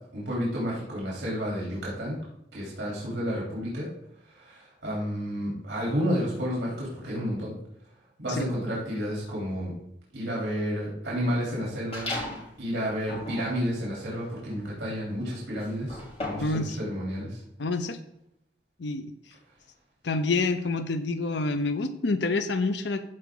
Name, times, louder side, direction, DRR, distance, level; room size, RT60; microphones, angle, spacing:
voice 1, 0.1-2.2 2.5-3.9 4.3-7.5 8.2-9.7 10.1-12.1 12.6-17.4, equal, 70° right, -5 dB, 3.6 m, -31 dB
sound 1, 11.9-12.5 13.0-16.6, left 2 dB, 35° left, 3.4 m, -37 dB
voice 2, 16.4-16.8 17.6-18.0 18.8-19.1 20.0-23.0, left 3 dB, 75° left, 10 dB, 0.6 m, -27 dB
14.0 x 4.8 x 3.9 m, 0.77 s
head